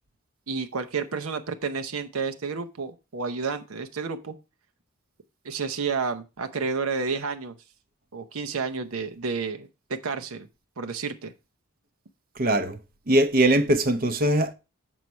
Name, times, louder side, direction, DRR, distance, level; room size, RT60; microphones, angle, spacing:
voice 1, 0.5-4.3 5.4-7.5 8.1-10.5 10.8-11.3, right 5 dB, 85° right, 0.8 m, -30 dB
voice 2, 12.4-12.8 13.1-14.5, right 1 dB, 40° right, 0.7 m, -21 dB
7.3 x 4.7 x 5.3 m
head